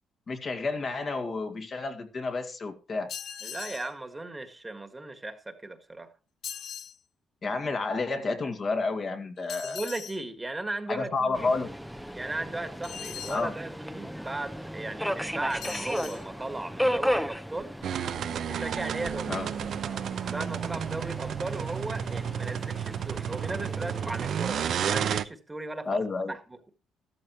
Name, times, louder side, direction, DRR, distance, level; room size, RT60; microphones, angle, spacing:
voice 1, 0.3-3.1 7.4-9.8 10.9-11.7 13.3-13.5 19.3-19.5 25.9-26.3, left 3 dB, 40° left, 2.0 m, -30 dB
sound 1, 3.1-3.9 6.4-7.0 9.5-10.2 12.8-13.5 15.5-16.2, left 9 dB, 65° left, 0.8 m, -40 dB
voice 2, 3.4-6.1 9.6-11.5 12.1-17.7 18.4-19.3 20.2-26.6, right 2 dB, 15° right, 1.7 m, -37 dB
Subway metro underground, 11.3-25.1, equal, ahead, 0.9 m, -35 dB
sound 2, 17.8-25.2, right 9 dB, 60° right, 0.8 m, -32 dB
13.5 x 13.0 x 3.1 m
cardioid pair, 110°, 0 cm